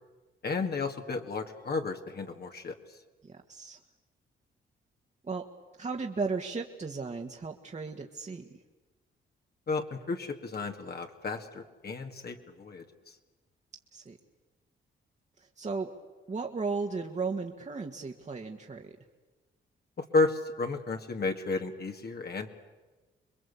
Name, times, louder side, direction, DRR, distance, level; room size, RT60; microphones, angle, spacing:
voice 1, 0.4-2.8 9.7-12.8 20.0-22.5, left 3 dB, 50° left, 4 dB, 2.1 m, -32 dB
voice 2, 3.2-3.8 5.2-5.4 5.8-8.5 13.9-14.2 15.4-15.9 16.3-18.9, right 4 dB, 35° right, 2 dB, 1.8 m, -35 dB
26.5 x 21.5 x 8.5 m, 1.3 s
cardioid pair, 70°, 21 cm